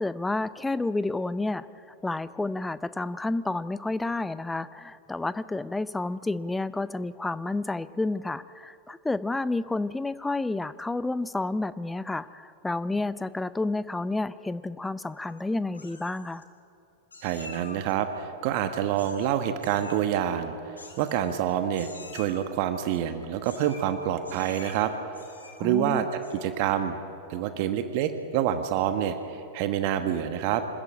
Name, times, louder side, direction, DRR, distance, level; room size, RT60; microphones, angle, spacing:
voice 1, 0.0-1.7 2.0-16.4 25.6-26.0, left 2 dB, 10° left, 16 dB, 0.6 m, -30 dB
Meow, 15.0-15.4 15.7-16.4 17.1-17.9 18.9-19.3 19.6-20.0 20.8-21.5 21.7-22.5 23.4-23.9 24.2-24.8 25.1-25.7 26.1-26.6, left 3 dB, 75° left, 2.7 m, -47 dB
voice 2, 17.2-20.5 21.0-24.9 25.6-26.1 26.4-27.0 27.3-30.6, right 10 dB, 45° right, 8 dB, 1.3 m, -27 dB
25.0 x 14.0 x 8.7 m, 2.6 s
figure-of-eight pair, 90°, 0 cm